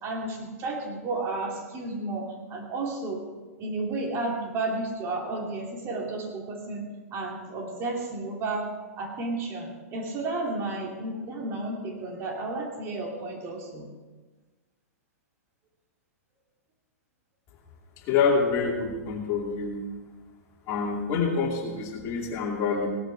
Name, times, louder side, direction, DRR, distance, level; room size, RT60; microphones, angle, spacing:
voice 1, 0.0-3.2 3.6-13.9, right 2 dB, 30° right, 0 dB, 2.8 m, -32 dB
voice 2, 18.1-19.8 20.7-22.9, left 5 dB, 35° left, 0 dB, 2.6 m, -26 dB
17.5 x 13.0 x 3.5 m, 1.3 s
figure-of-eight pair, 105°, 8 cm